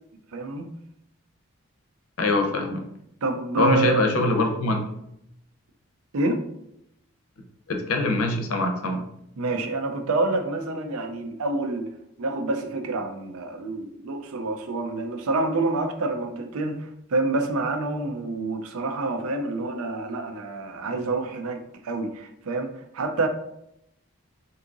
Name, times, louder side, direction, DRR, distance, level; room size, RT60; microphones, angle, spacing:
voice 1, 0.3-0.7 3.2-4.0 6.1-6.4 9.4-11.9 12.2-23.3, right 2 dB, 85° right, 0.5 m, -27 dB
voice 2, 2.2-2.8 3.6-4.8 7.7-9.0, left 2 dB, 85° left, 0.6 m, -23 dB
3.6 x 2.7 x 2.5 m
head